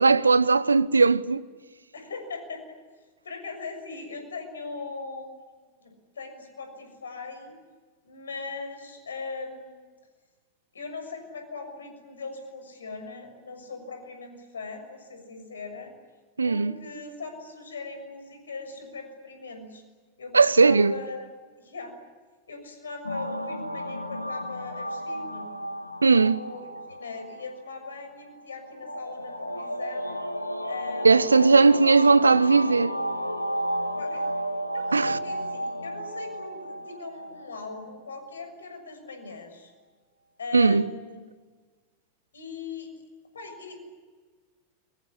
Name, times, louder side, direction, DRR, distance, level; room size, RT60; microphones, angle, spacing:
voice 1, 0.0-1.4 16.4-16.8 20.3-20.9 26.0-26.4 31.0-33.0 34.9-35.2 40.5-40.8, right 4 dB, 75° right, 0.8 m, -18 dB
voice 2, 1.9-2.8 3.2-5.3 5.8-7.6 8.0-9.8 10.7-15.9 16.4-19.8 20.2-21.3 21.6-21.9 22.5-25.5 26.0-30.2 30.6-31.7 33.8-34.3 34.7-39.7 40.4-41.2 42.3-42.9 43.3-43.9, left 4 dB, 70° left, 6.7 m, -40 dB
sound 1, 23.0-38.3, equal, 85° left, 1.7 m, -33 dB
23.5 x 23.5 x 9.9 m
figure-of-eight pair, 90°, 0 cm